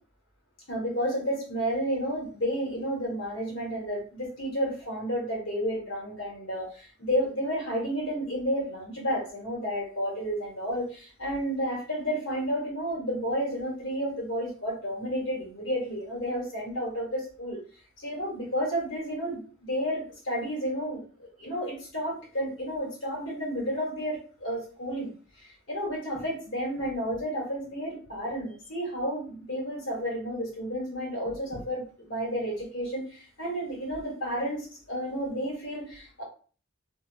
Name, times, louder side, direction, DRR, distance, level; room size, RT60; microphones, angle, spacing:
voice 1, 0.7-17.6 18.0-25.1 25.4-36.2, equal, 70° left, -4 dB, 1.2 m, -31 dB
2.7 x 2.3 x 2.3 m, 0.39 s
head